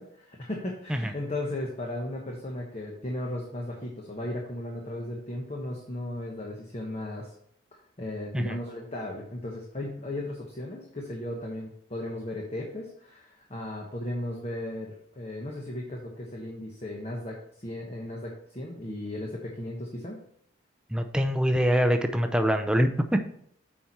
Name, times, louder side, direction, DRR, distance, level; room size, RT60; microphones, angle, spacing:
voice 1, 0.0-7.3 8.0-20.2, left 1 dB, 30° left, -1 dB, 1.0 m, -36 dB
voice 2, 20.9-23.2, equal, 5° right, 7 dB, 0.5 m, -24 dB
8.3 x 4.3 x 4.6 m, 0.68 s
head